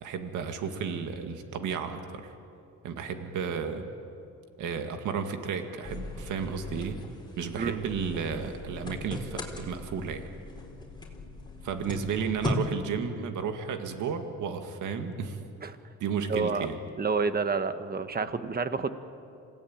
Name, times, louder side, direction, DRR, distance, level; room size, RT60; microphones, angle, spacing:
voice 1, 0.0-2.4 2.8-3.9 4.6-7.0 7.4-10.3 11.6-15.4 16.0-16.8, right 6 dB, 80° right, 6 dB, 2.0 m, -33 dB
sound 1, 5.8-12.6, left 2 dB, 15° left, 4.3 m, -39 dB
voice 2, 16.3-16.7 17.0-18.9, right 4 dB, 30° right, 10 dB, 1.4 m, -29 dB
27.0 x 17.5 x 8.9 m, 2.6 s
cardioid pair, 90°, 30 cm